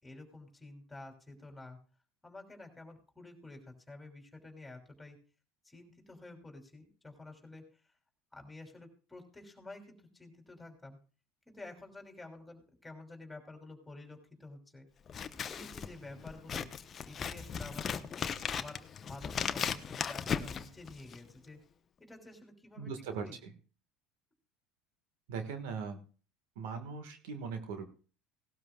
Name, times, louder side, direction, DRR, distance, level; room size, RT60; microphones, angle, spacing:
voice 1, 0.0-1.8 2.2-5.2 5.6-7.9 8.3-11.0 11.5-14.9 15.5-16.7 17.1-18.1 18.5-21.6 22.0-23.4, left 2 dB, 10° left, 3 dB, 3.0 m, -50 dB
Scissors, 15.1-21.3, left 7 dB, 35° left, 0.8 m, -37 dB
voice 2, 22.8-23.5 25.3-26.0 26.5-27.9, right 5 dB, 75° right, 7 dB, 1.5 m, -40 dB
18.0 x 12.5 x 2.3 m, 0.38 s
hypercardioid pair, 90°, 0 cm